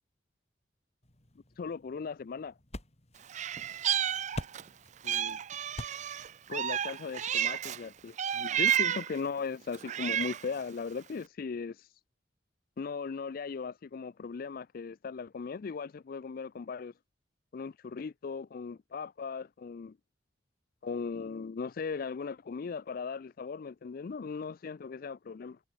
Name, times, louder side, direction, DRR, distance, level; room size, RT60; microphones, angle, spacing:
sound 1, 1.0-8.1, left 1 dB, 35° left, 2.8 m, -48 dB
voice 1, 1.6-2.6 5.0-5.4 6.5-11.9 12.8-16.9 17.5-20.0 20.8-25.6, left 5 dB, 50° left, 0.4 m, -38 dB
Meow, 3.3-4.7 5.0-7.8 8.2-9.2 9.7-10.5, right 10 dB, 40° right, 0.4 m, -31 dB
head